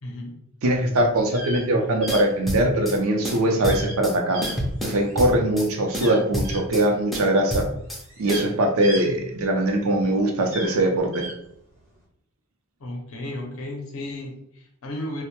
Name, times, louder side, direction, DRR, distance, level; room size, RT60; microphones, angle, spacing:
voice 1, 0.0-0.4 12.8-15.2, left 1 dB, 75° left, 1 dB, 0.6 m, -34 dB
voice 2, 0.6-4.4 4.8-7.7 8.2-11.2, right 1 dB, 75° right, 2 dB, 0.5 m, -21 dB
sound 1, 1.3-1.6 2.0-2.2 3.6-4.0 4.3-5.2 5.9-6.6 7.5-7.6 8.0-9.8 10.4-11.3, right 1 dB, 60° right, 0.9 m, -35 dB
sound 2, 2.1-3.0 3.2-4.2 4.4-5.7 5.9-6.8 7.1-8.0 8.3-8.5, equal, ahead, 0.4 m, -29 dB
2.1 x 2.1 x 2.8 m, 0.74 s
head